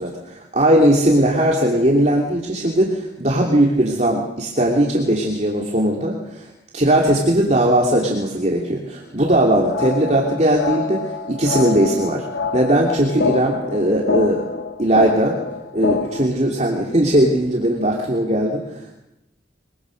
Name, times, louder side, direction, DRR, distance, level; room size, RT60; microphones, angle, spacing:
voice 1, 0.0-6.5 6.7-12.3 12.5-14.4 14.8-15.4 15.7-18.9, right 1 dB, 40° right, -1 dB, 2.9 m, -18 dB
sound 1, 9.3-16.3, left 4 dB, 85° left, 1.8 m, -26 dB
23.0 x 23.0 x 6.5 m, 0.87 s
head